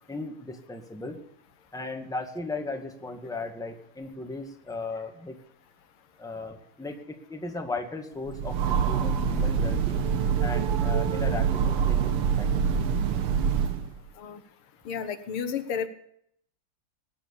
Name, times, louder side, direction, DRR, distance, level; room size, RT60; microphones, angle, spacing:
voice 1, 0.1-1.2 1.7-5.4 6.2-10.1 10.4-12.7, left 3 dB, ahead, 4 dB, 1.7 m, -36 dB
Train, 8.3-14.0, right 7 dB, 85° right, 2.2 m, -25 dB
voice 2, 14.9-15.9, left 7 dB, 80° left, 11 dB, 2.1 m, -32 dB
20.0 x 10.0 x 7.1 m, 0.70 s
omnidirectional pair, 2.4 m